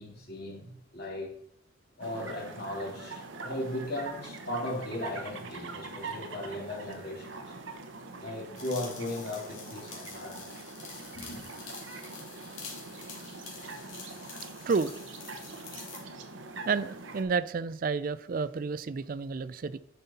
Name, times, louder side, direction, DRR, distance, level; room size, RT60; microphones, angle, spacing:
voice 1, 0.0-1.3 2.0-7.5 8.2-10.5 11.2-11.4, left 1 dB, 55° left, 2.4 m, -37 dB
sound 1, 2.0-17.2, right 3 dB, 75° right, 1.0 m, -43 dB
sound 2, 8.6-16.1, left 5 dB, 85° left, 2.4 m, -47 dB
voice 2, 16.7-19.8, right 5 dB, 45° right, 0.4 m, -30 dB
9.5 x 5.4 x 4.2 m
head